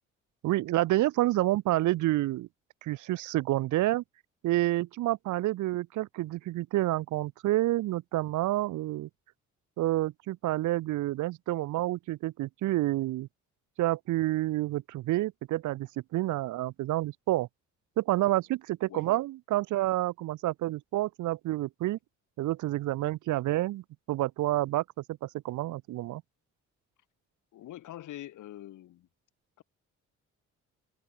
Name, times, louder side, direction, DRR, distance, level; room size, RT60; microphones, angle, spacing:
voice 1, 0.4-2.5 2.8-4.0 4.4-9.1 9.8-13.3 13.8-17.5 18.0-22.0 22.4-26.2, right 16 dB, 75° right, 0.6 m, -29 dB
voice 2, 27.5-29.1 29.6-29.7, left 13 dB, 80° left, 3.7 m, -44 dB
cardioid pair, 90°, 30 cm